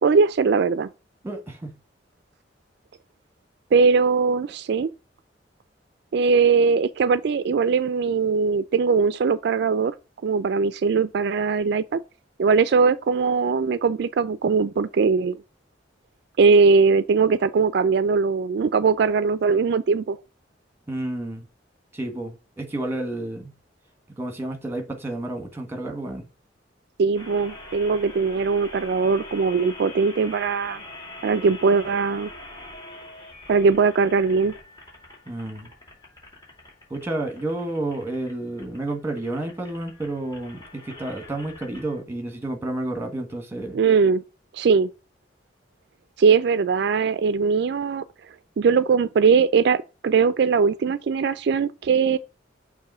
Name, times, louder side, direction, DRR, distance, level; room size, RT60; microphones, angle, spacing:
voice 1, 0.0-0.9 3.7-4.9 6.1-9.9 10.2-12.0 12.4-15.4 16.4-20.2 27.0-30.8 31.2-32.3 33.5-34.5 43.7-44.2 44.5-44.9 46.2-48.0 48.6-52.2, right 5 dB, 65° right, 0.4 m, -20 dB
voice 2, 1.2-1.8 20.9-21.4 21.9-23.5 24.2-26.3 35.3-35.7 36.9-43.8, right 2 dB, 15° right, 1.4 m, -30 dB
sound 1, 27.1-42.0, left 2 dB, 25° left, 2.4 m, -44 dB
6.8 x 3.0 x 5.4 m
head